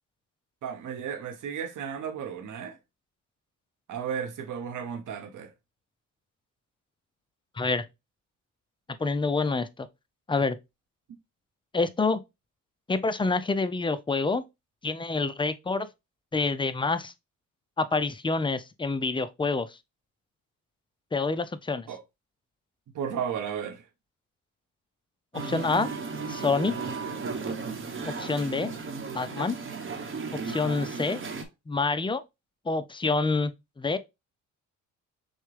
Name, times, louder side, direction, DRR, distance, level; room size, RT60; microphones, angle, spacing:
voice 1, 0.6-2.8 3.9-5.5 21.9-22.0 22.9-23.8, right 7 dB, 70° right, 1.0 m, -34 dB
voice 2, 9.0-9.9 10.3-10.6 11.7-12.2 12.9-14.4 14.8-15.9 16.3-17.1 17.8-19.8 21.1-21.9 25.3-25.9 26.3-26.8 28.1-28.7 29.1-29.6 30.3-31.2 31.7-32.2 32.7-34.0, left 3 dB, 15° left, 0.4 m, -27 dB
Musical instrument, 25.3-31.5, right 4 dB, 40° right, 1.0 m, -35 dB
6.3 x 2.2 x 3.2 m
cardioid pair, 100°, 32 cm